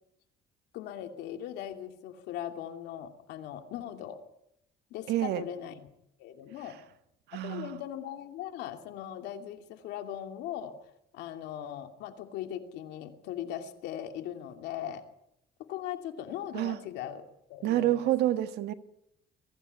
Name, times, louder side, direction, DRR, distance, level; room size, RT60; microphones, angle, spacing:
voice 1, 0.7-4.2 4.9-5.9 6.2-6.8 7.3-10.8 11.1-15.1 15.6-17.2 17.5-17.9, left 10 dB, 85° left, 2.7 m, -39 dB
voice 2, 5.1-5.4 7.3-7.8 16.5-16.8 17.6-18.7, right 13 dB, 80° right, 1.6 m, -28 dB
22.0 x 15.5 x 9.4 m
cardioid pair, 110°, 17 cm